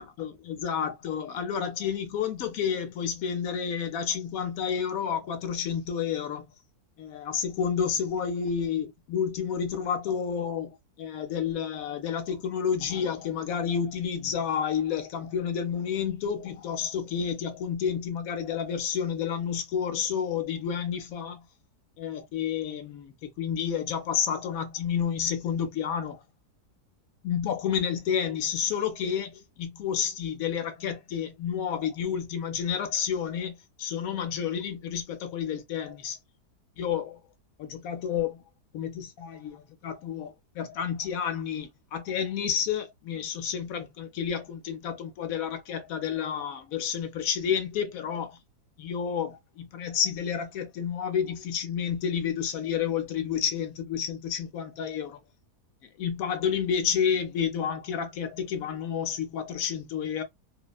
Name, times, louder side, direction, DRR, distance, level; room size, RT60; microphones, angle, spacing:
voice 1, 0.0-6.5 7.0-21.4 22.0-26.2 27.2-36.2 36.8-37.2 37.6-38.4 38.7-48.4 48.8-55.2 56.0-60.2, left 8 dB, 70° left, 0.9 m, -30 dB
2.8 x 2.1 x 2.3 m
omnidirectional pair, 1.7 m